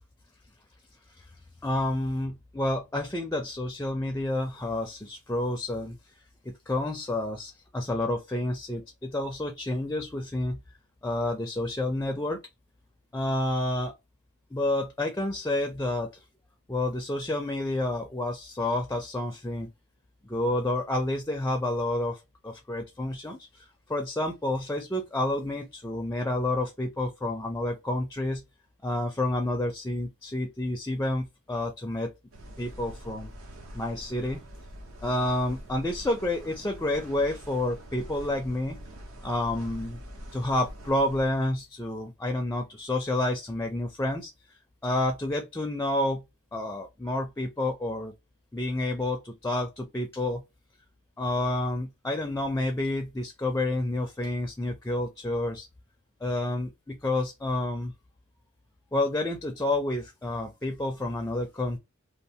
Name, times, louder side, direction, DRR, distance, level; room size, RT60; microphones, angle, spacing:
voice 1, 1.6-6.0 6.5-10.6 11.0-12.4 13.1-13.9 14.5-16.1 16.7-19.7 20.2-28.4 28.8-32.1 32.6-33.3 33.7-34.4 35.0-38.8 39.2-40.0 40.3-44.3 44.8-46.2 46.5-48.1 48.5-50.4 51.2-55.7 56.2-57.9 58.9-61.8, left 1 dB, 10° left, 0.4 m, -29 dB
sound 1, 32.3-41.3, equal, 75° right, 0.8 m, -44 dB
3.0 x 2.0 x 2.7 m
head